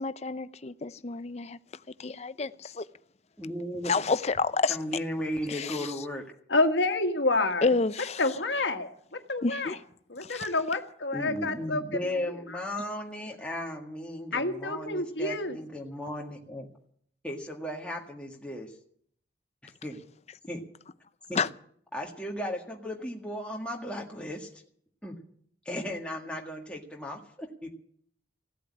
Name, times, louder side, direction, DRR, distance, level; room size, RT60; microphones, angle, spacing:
voice 1, 0.0-1.6 2.0-2.8 3.9-4.8 5.5-5.8 7.6-8.2 9.4-9.7 10.3-10.4 21.3-21.5, left 4 dB, 35° left, 0.6 m, -29 dB
voice 2, 3.4-3.9 4.7-6.2 11.1-16.7 17.2-18.7 19.6-20.0 20.5-20.6 21.3-21.5 21.9-24.5 25.0-25.1 25.6-27.7, equal, 5° left, 1.7 m, -35 dB
voice 3, 6.5-7.7 8.2-9.8 10.1-12.6 14.3-15.6, left 2 dB, 85° left, 1.7 m, -29 dB
16.0 x 8.3 x 9.8 m
head